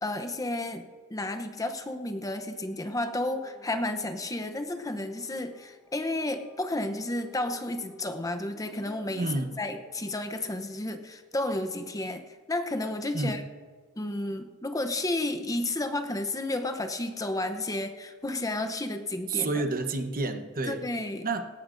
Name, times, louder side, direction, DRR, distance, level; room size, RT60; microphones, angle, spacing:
voice 1, 0.0-9.3 9.6-13.4 14.0-19.5 20.7-21.3, left 2 dB, 15° left, 7 dB, 0.7 m, -32 dB
sound 1, 3.0-10.5, right 1 dB, 5° right, 1.6 m, -53 dB
voice 2, 9.2-9.6 13.1-13.4 19.3-20.9 21.2-21.5, right 3 dB, 40° right, 7 dB, 1.0 m, -29 dB
20.5 x 18.0 x 2.6 m, 1.5 s
head